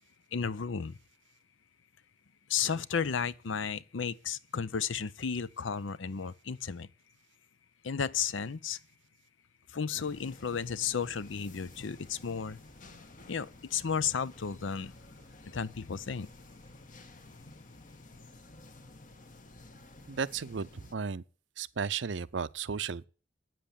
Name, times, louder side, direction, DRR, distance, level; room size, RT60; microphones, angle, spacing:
voice 1, 0.3-1.0 2.5-6.9 7.8-8.8 9.7-12.6 13.3-14.9 15.5-16.3, left 6 dB, 80° left, 0.6 m, -33 dB
sound 1, 10.0-20.9, left 2 dB, 45° left, 1.2 m, -53 dB
voice 2, 20.1-21.2 21.6-23.1, right 6 dB, 70° right, 0.6 m, -34 dB
9.3 x 7.6 x 8.5 m
head